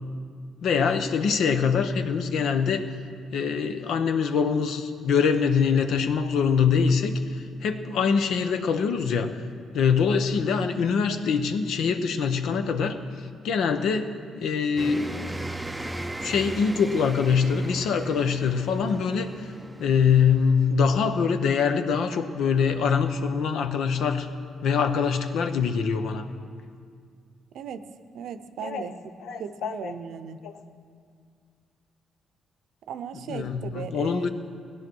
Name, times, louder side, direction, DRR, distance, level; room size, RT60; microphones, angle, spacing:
voice 1, 0.6-2.9 3.3-9.4 9.7-13.0 13.4-15.4 16.2-19.4 19.8-24.3 24.6-26.3 28.6-28.9 29.2-29.9 30.4-30.6 33.3-34.3, left 6 dB, 75° left, 8 dB, 0.8 m, -24 dB
sound 1, 14.8-21.2, right 1 dB, 10° right, 0.5 m, -37 dB
voice 2, 28.1-28.9 29.4-30.4 32.9-34.3, right 7 dB, 75° right, 11 dB, 0.7 m, -37 dB
17.0 x 10.0 x 6.2 m, 2.2 s
cardioid pair, 90°, 0 cm